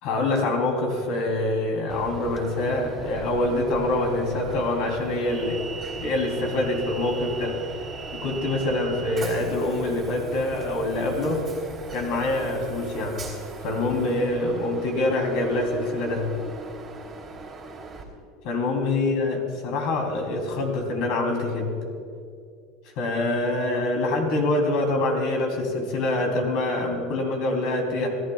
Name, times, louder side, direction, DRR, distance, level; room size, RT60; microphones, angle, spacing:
voice 1, 0.0-7.6 8.1-11.4 11.9-13.2 13.6-16.3 18.4-21.7 22.9-28.1, left 2 dB, 60° left, 2 dB, 3.3 m, -25 dB
Train, 1.9-18.0, right 4 dB, 25° right, 3.1 m, -39 dB
26.5 x 14.5 x 2.4 m, 2.3 s
supercardioid pair, 135°, 0 cm